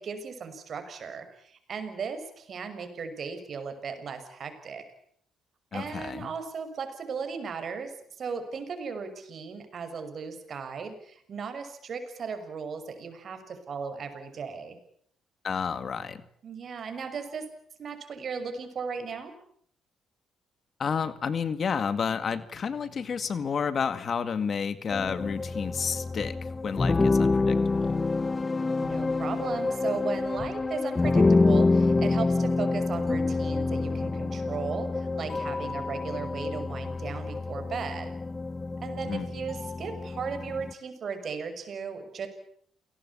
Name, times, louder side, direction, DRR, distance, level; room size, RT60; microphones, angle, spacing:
voice 1, 0.0-4.8 5.7-14.8 16.4-17.5 17.8-19.3 28.8-38.1 38.8-42.3, right 5 dB, 55° right, 8 dB, 6.2 m, -36 dB
voice 2, 5.7-6.3 15.4-16.2 20.8-28.0 39.1-39.3, left 6 dB, 50° left, 13 dB, 2.1 m, -31 dB
sound 1, 24.9-40.7, left 3 dB, 25° left, 1.1 m, -27 dB
28.5 x 18.5 x 8.6 m, 0.65 s
cardioid pair, 90°, 0 cm